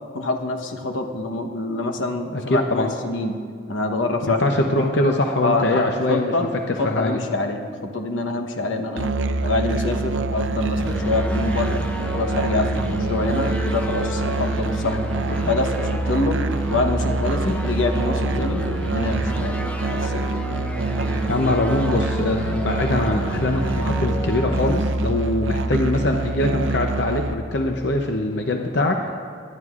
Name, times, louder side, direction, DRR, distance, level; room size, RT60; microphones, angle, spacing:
voice 1, 0.1-3.4 3.7-4.9 5.4-6.5 6.8-7.7 7.9-9.1 9.4-11.8 12.1-15.0 15.4-16.4 16.7-20.3, left 2 dB, 80° left, 5 dB, 1.0 m, -25 dB
voice 2, 2.3-2.9 4.2-6.3 6.7-7.2 12.8-13.0 21.1-29.0, left 1 dB, 60° left, 3 dB, 0.7 m, -23 dB
Musical instrument, 9.0-27.3, right 2 dB, 75° right, 0.6 m, -25 dB
sound 1, 10.8-24.7, left 1 dB, 5° left, 0.5 m, -31 dB
24.0 x 11.0 x 2.5 m, 2.1 s
head